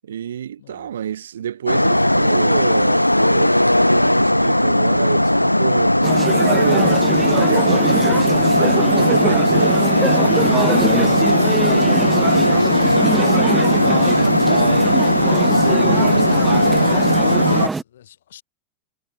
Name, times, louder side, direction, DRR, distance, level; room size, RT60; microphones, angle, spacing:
voice 1, 0.0-6.0 6.4-9.8 15.9-16.8, right 9 dB, 65° right, 1.2 m, -28 dB
voice 2, 0.6-0.9 8.4-9.2 16.4-18.4, left 11 dB, 60° left, 4.8 m, -41 dB
sound 1, 1.7-17.7, left 1 dB, 90° left, 0.7 m, -17 dB
sound 2, 6.0-17.8, right 3 dB, 10° right, 0.5 m, -23 dB
figure-of-eight pair, 90°, 0 cm